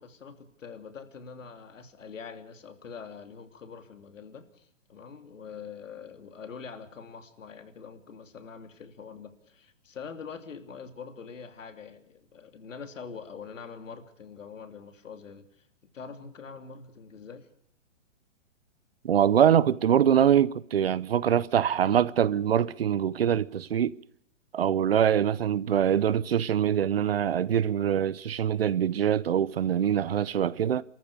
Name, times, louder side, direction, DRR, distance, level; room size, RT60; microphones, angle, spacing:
voice 1, 0.0-15.7 15.9-17.5, left 6 dB, 85° left, 3.0 m, -44 dB
voice 2, 19.0-23.9 24.5-30.8, right 9 dB, 50° right, 0.8 m, -24 dB
29.5 x 14.0 x 6.7 m
hypercardioid pair, 180°, 37 cm